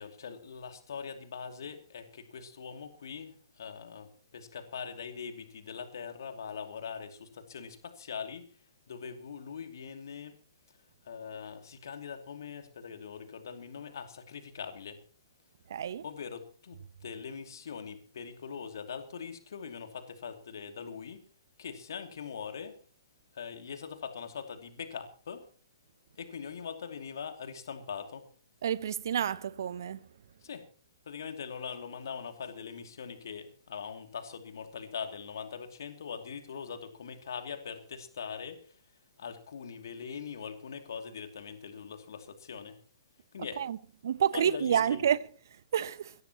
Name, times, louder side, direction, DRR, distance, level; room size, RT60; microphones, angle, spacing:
voice 1, 0.0-8.5 8.9-10.4 11.0-15.0 16.0-21.3 21.6-22.8 23.3-25.5 26.2-28.3 30.4-30.7 31.1-38.8 39.2-42.8 43.3-43.7 44.3-45.1, left 6 dB, 60° left, 2.7 m, -42 dB
voice 2, 15.7-16.0 28.6-30.0 43.6-43.8 44.0-45.2 45.7-46.1, right 9 dB, 55° right, 0.9 m, -29 dB
22.5 x 16.0 x 3.0 m
figure-of-eight pair, 115°, 2 cm